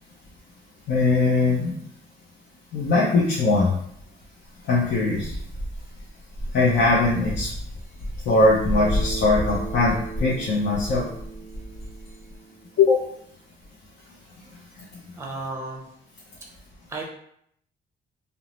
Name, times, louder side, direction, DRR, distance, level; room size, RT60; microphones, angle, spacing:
voice 1, 0.9-1.7 2.7-3.8 4.6-5.4 6.5-7.5 8.3-11.1 12.8-13.0, left 3 dB, 60° left, -5 dB, 0.6 m, -20 dB
sound 1, 5.2-12.4, equal, 80° left, 1.1 m, -32 dB
Bass guitar, 8.7-13.0, right 5 dB, 10° left, 1.0 m, -38 dB
voice 2, 15.2-15.8 16.9-17.0, right 3 dB, 15° right, -1 dB, 0.6 m, -33 dB
2.5 x 2.0 x 3.0 m, 0.70 s
cardioid pair, 90°, 20 cm